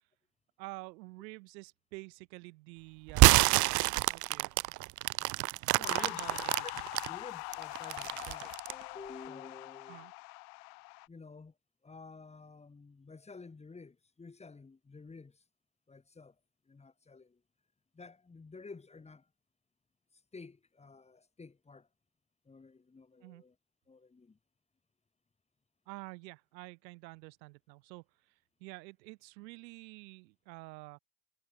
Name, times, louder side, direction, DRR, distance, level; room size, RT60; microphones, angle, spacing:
voice 1, 0.6-4.7 6.0-6.5 9.9-10.1 23.2-23.4 25.9-28.3 28.6-31.0, right 24 dB, 85° right, 6.2 m, -49 dB
sound 1, 3.1-7.1 7.5-8.8, right 20 dB, 40° right, 0.6 m, -26 dB
voice 2, 5.7-6.8 7.1-10.1 11.1-11.5 11.8-15.4 15.9-16.3 16.7-17.4 17.9-19.3 20.3-21.9 22.4-23.5 23.9-24.4, left 4 dB, 15° left, 5.2 m, -51 dB
sound 2, 5.8-11.1, left 40 dB or more, 70° left, 7.2 m, -43 dB
cardioid pair, 155°, 50 cm